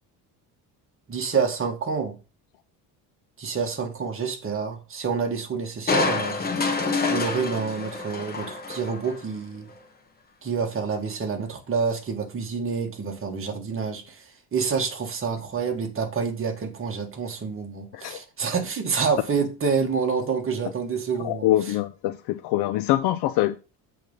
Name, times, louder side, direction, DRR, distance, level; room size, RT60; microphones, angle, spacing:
voice 1, 1.1-2.2 3.4-6.5 7.1-9.7 10.4-21.5, right 5 dB, 30° right, 1.7 m, -28 dB
Crushing, 5.9-9.3 9.7-9.8, left 4 dB, 20° left, 1.4 m, -27 dB
voice 2, 21.2-23.6, left 14 dB, 70° left, 0.6 m, -24 dB
7.6 x 3.6 x 5.4 m
cardioid pair, 120°, 41 cm